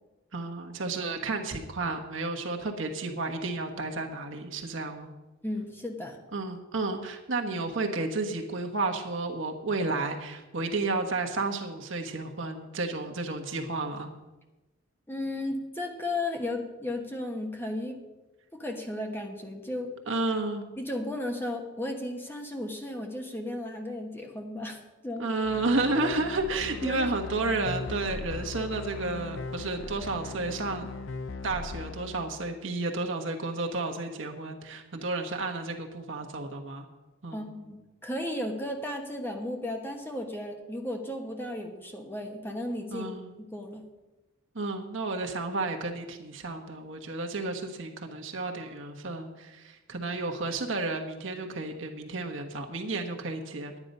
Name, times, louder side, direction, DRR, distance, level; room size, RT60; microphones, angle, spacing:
voice 1, 0.3-5.1 6.3-14.1 20.1-20.7 25.2-30.9 31.4-36.9 37.2-37.5 42.9-43.3 44.5-53.8, right 3 dB, 70° right, 3 dB, 1.3 m, -32 dB
voice 2, 5.4-6.2 15.1-18.0 18.5-19.9 20.8-25.3 26.8-27.1 37.3-37.8 38.0-43.1 43.5-43.9, left 1 dB, 10° left, 2 dB, 1.1 m, -34 dB
sound 1, 25.4-32.4, left 3 dB, 70° left, 0.6 m, -39 dB
10.5 x 9.7 x 5.4 m, 1.1 s
head